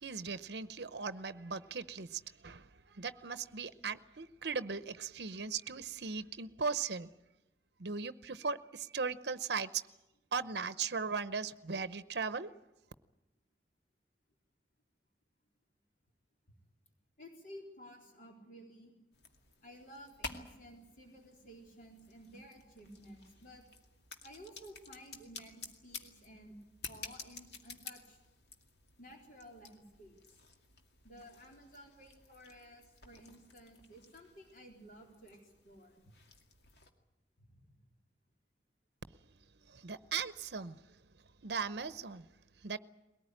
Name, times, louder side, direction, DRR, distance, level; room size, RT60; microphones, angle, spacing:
voice 1, 0.0-7.1 7.8-9.7 10.3-12.5 39.7-40.8 41.4-42.3 42.6-42.8, right 5 dB, 70° right, 0.8 m, -38 dB
voice 2, 17.2-18.9 19.6-23.6 24.2-26.6 26.9-28.2 29.0-30.2 31.0-36.1 37.4-37.8, equal, 45° left, 4.0 m, -54 dB
sound 1, 19.1-36.9, left 4 dB, 75° left, 2.3 m, -52 dB
21.5 x 18.5 x 9.9 m
head